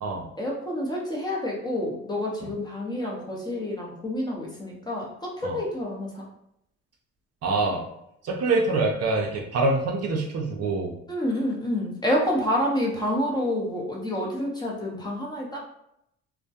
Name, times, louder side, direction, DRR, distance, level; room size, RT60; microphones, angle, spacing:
voice 1, 0.4-6.3 11.1-15.6, left 1 dB, 10° left, -3 dB, 0.7 m, -28 dB
voice 2, 7.4-7.8 8.2-10.9, right 3 dB, 50° right, 0 dB, 0.5 m, -25 dB
2.2 x 2.1 x 2.7 m, 0.77 s
supercardioid pair, 80°, 33 cm